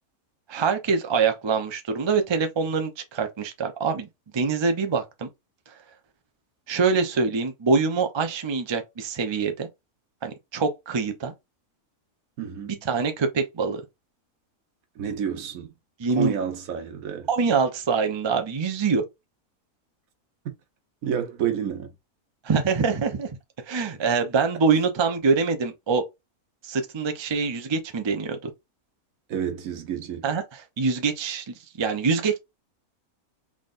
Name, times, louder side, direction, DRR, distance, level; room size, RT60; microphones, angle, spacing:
voice 1, 0.5-4.1 4.3-5.3 5.7-5.8 6.7-9.7 10.2-11.3 12.8-13.8 16.0-16.3 17.3-19.0 22.4-23.3 23.6-26.0 26.6-28.5 30.2-32.4, right 5 dB, 45° right, 0.3 m, -24 dB
voice 2, 12.4-12.8 15.0-15.7 16.2-17.3 20.4-20.5 21.0-21.9 29.3-30.2, right 9 dB, 70° right, 1.2 m, -29 dB
3.9 x 3.5 x 2.5 m
omnidirectional pair, 1.6 m